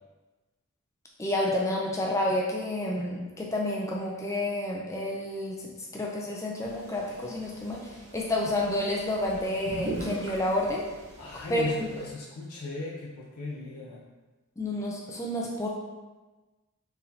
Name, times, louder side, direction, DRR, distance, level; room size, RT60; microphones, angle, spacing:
voice 1, 1.2-10.9 11.5-11.9 14.6-15.7, left 1 dB, 15° left, -2 dB, 0.4 m, -30 dB
sound 1, 6.7-12.1, right 2 dB, 50° right, 0.8 m, -41 dB
voice 2, 11.2-14.0, left 2 dB, 85° left, -3 dB, 0.5 m, -37 dB
4.5 x 3.4 x 2.7 m, 1.2 s
head